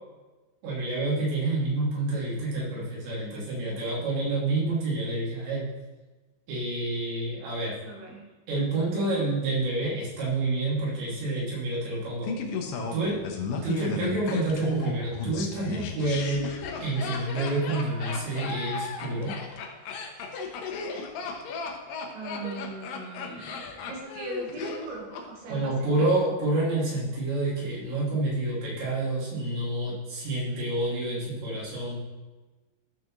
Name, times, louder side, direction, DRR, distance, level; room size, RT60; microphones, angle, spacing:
voice 1, 0.6-5.6 6.5-7.8 8.5-12.4 12.9-13.2 13.6-16.4 16.8-19.3 25.5-32.0, right 2 dB, 90° right, -7 dB, 4.8 m, -28 dB
voice 2, 7.8-8.2 22.1-26.1, right 2 dB, 70° right, -2 dB, 3.3 m, -39 dB
Laughter, 12.2-25.2 25.5-25.6, left 4 dB, 75° left, 2.1 m, -34 dB
13.0 x 6.2 x 3.1 m, 1.2 s
omnidirectional pair, 5.0 m